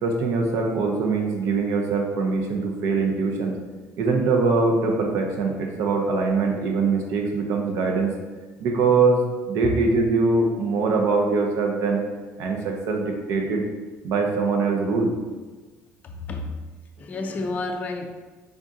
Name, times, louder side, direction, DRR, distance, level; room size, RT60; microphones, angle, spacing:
voice 1, 0.0-3.6 4.0-8.1 8.6-12.0 12.4-13.6 14.0-15.1, right 4 dB, 70° right, 2 dB, 0.6 m, -22 dB
voice 2, 16.0-16.6 17.0-18.1, left 3 dB, 30° left, 4 dB, 0.3 m, -30 dB
3.5 x 2.6 x 3.6 m, 1.3 s
cardioid pair, 140°, 5 cm